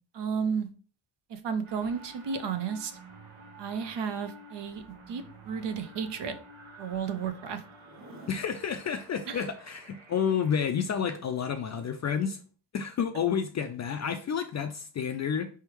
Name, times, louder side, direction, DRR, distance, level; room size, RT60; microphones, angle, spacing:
voice 1, 0.1-0.7 1.3-2.9 3.6-6.3 6.8-7.6 9.3-9.5, right 6 dB, 60° right, 0.7 m, -33 dB
sound 1, 1.6-10.9, right 2 dB, 85° right, 1.2 m, -51 dB
Zipper (clothing), 7.7-8.5 10.6-12.0 13.8-14.1, right 1 dB, 35° right, 1.4 m, -53 dB
voice 2, 8.3-12.4 12.7-15.5, left 7 dB, 40° left, 0.4 m, -30 dB
4.5 x 3.4 x 3.0 m
cardioid pair, 120°, 47 cm